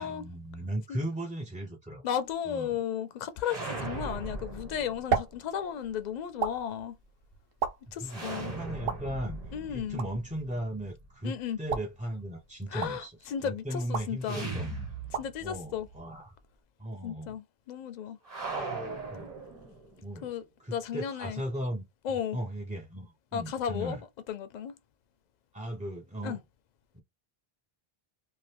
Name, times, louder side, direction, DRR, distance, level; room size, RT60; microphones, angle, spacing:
voice 1, 0.0-2.0 2.5-2.8 8.0-9.4 9.7-14.7 15.4-16.4 16.8-17.3 19.1-19.3 20.0-20.3 20.6-21.8 22.3-24.0 25.5-26.4 26.9-27.0, right 1 dB, 10° right, 0.4 m, -37 dB
voice 2, 2.0-7.0 7.9-8.5 9.5-10.0 11.2-11.6 12.7-14.5 15.1-15.9 17.0-18.2 20.2-20.4 20.7-21.4 22.0-22.4 23.3-24.0 24.3-24.8 26.2-26.4, left 8 dB, 55° left, 0.5 m, -34 dB
sound 1, 3.4-5.4 8.1-11.1 14.2-15.6 15.9-16.0 18.3-20.0, right 3 dB, 40° right, 1.2 m, -39 dB
sound 2, 4.4-16.6, right 6 dB, 70° right, 0.8 m, -38 dB
2.7 x 2.4 x 3.3 m
omnidirectional pair, 1.0 m